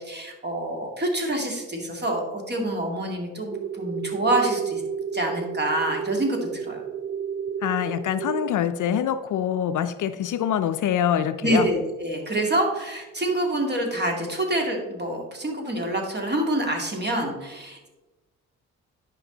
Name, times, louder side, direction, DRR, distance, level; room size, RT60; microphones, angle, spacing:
voice 1, 0.0-4.8 5.1-6.8 11.4-17.9, right 1 dB, 30° right, 1 dB, 2.6 m, -26 dB
sound 1, 3.5-8.5, right 7 dB, 80° right, 0.8 m, -31 dB
voice 2, 7.6-11.7, left 10 dB, 60° left, 11 dB, 0.6 m, -25 dB
11.0 x 5.3 x 4.0 m, 1.1 s
supercardioid pair, 65°, 35 cm